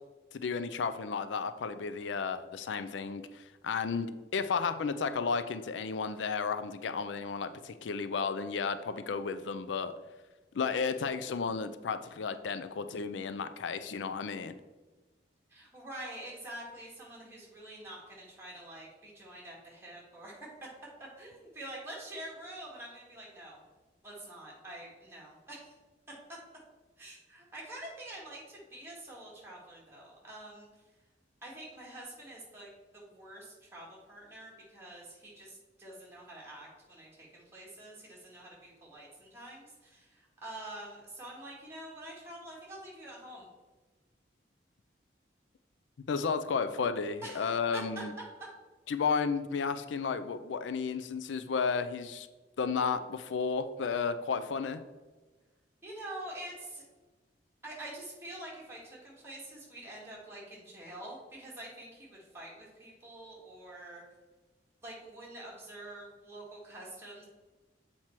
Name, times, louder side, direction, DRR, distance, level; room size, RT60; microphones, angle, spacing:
voice 1, 0.3-9.9 10.5-14.6 46.1-48.1 48.9-52.3 52.6-54.8, left 5 dB, 90° left, 11 dB, 0.4 m, -33 dB
voice 2, 15.5-20.5 21.0-23.6 24.0-25.7 27.0-30.7 31.4-43.5 47.2-48.0 55.8-56.8 57.6-64.0 64.8-67.3, right 1 dB, 15° right, -4 dB, 2.0 m, -46 dB
7.4 x 4.4 x 4.5 m, 1.2 s
head